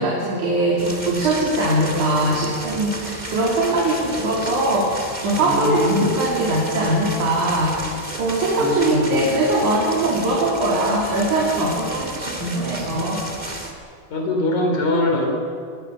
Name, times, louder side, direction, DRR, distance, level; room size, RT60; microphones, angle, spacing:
voice 1, 0.0-13.2, right 1 dB, 80° right, -4 dB, 4.8 m, -21 dB
sound 1, 0.8-13.7, right 1 dB, 15° right, 2.4 m, -33 dB
voice 2, 5.4-6.1 8.6-9.3 13.4-13.6 14.1-15.3, left 1 dB, 80° left, 2 dB, 5.2 m, -23 dB
24.5 x 20.5 x 7.0 m, 2.2 s
omnidirectional pair, 3.4 m